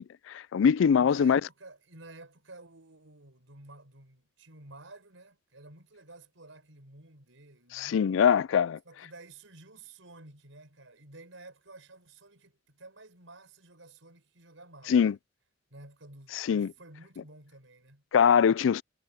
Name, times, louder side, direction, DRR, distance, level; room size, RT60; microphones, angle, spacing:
voice 1, 0.0-1.4 7.7-8.8 14.9-15.2 16.3-16.7 18.1-18.8, left 7 dB, 80° left, 0.3 m, -23 dB
voice 2, 1.0-8.1 8.8-15.0 15.7-18.0, right 2 dB, 90° right, 5.2 m, -52 dB
head